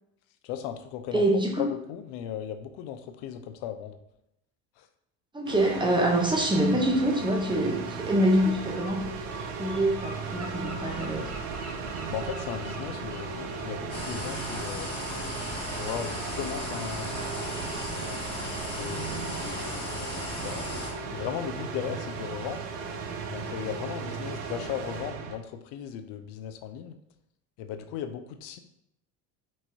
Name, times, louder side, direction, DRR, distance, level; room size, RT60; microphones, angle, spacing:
voice 1, 0.4-1.2 1.6-4.0 4.8-4.9 12.1-14.9 15.7-18.2 18.7-20.7 21.1-22.7 23.3-27.0 27.6-28.6, left 9 dB, 55° left, 7 dB, 0.6 m, -37 dB
voice 2, 1.1-1.7 5.3-9.1 9.6-11.3, right 1 dB, 10° right, 2 dB, 0.7 m, -25 dB
sound 1, 5.5-25.4, right 5 dB, 60° right, 0.8 m, -36 dB
Gull seagull, 8.3-15.8, right 2 dB, 35° right, 1.4 m, -44 dB
sound 2, 13.9-20.9, left 2 dB, 10° left, 1.2 m, -37 dB
4.6 x 2.9 x 2.7 m, 0.81 s
hypercardioid pair, 75°, 48 cm